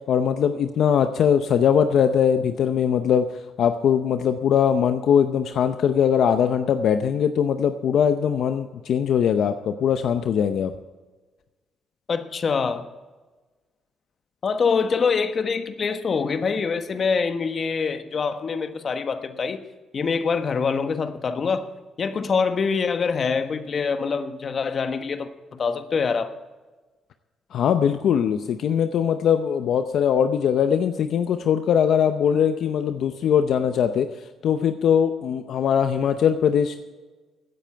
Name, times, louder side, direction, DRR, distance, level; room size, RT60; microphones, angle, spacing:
voice 1, 0.1-3.3 3.6-10.7 27.5-34.1 34.4-36.8, left 8 dB, 70° left, 8 dB, 0.7 m, -21 dB
voice 2, 12.1-12.8 14.4-19.6 19.9-21.7 22.0-26.3, left 5 dB, 45° left, 9 dB, 1.2 m, -25 dB
16.5 x 9.1 x 4.6 m, 1.3 s
cardioid pair, 90°, 0 cm